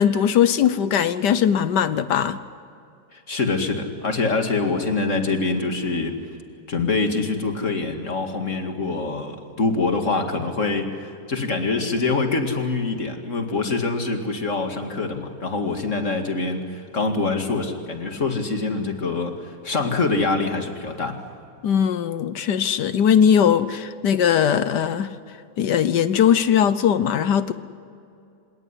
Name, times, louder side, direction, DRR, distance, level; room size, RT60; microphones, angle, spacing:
voice 1, 0.0-2.4 21.6-25.1 25.6-27.5, left 8 dB, 70° left, 13 dB, 1.4 m, -19 dB
voice 2, 3.1-6.2 6.7-21.2, left 3 dB, 40° left, 4 dB, 2.5 m, -25 dB
26.5 x 18.0 x 10.0 m, 2.5 s
omnidirectional pair, 2.0 m